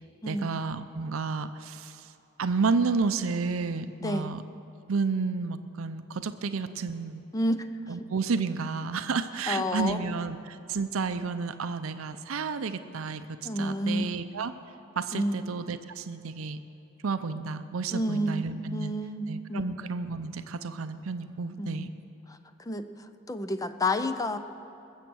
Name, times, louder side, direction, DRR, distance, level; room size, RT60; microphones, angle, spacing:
voice 1, 0.3-2.1 2.4-4.4 4.9-7.2 7.9-14.5 15.0-16.6 17.0-18.9 19.3-21.9, right 4 dB, 90° right, 10 dB, 0.6 m, -31 dB
voice 2, 4.0-4.3 7.3-7.7 9.5-10.0 13.4-14.1 15.1-15.4 17.9-18.4 18.7-19.7 21.6-21.9 22.7-22.9 23.3-24.4, left 1 dB, 15° left, 10 dB, 0.5 m, -29 dB
20.5 x 7.4 x 6.2 m, 2.8 s
head